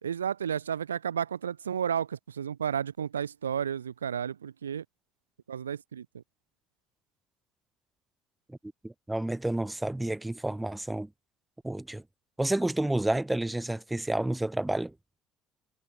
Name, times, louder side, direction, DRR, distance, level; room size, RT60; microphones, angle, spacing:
voice 1, 0.0-4.8 5.5-6.2, right 8 dB, 80° right, 2.9 m, -32 dB
voice 2, 8.8-11.1 11.6-12.0 12.4-14.9, right 1 dB, 10° right, 6.7 m, -30 dB
figure-of-eight pair, 50°, 0 cm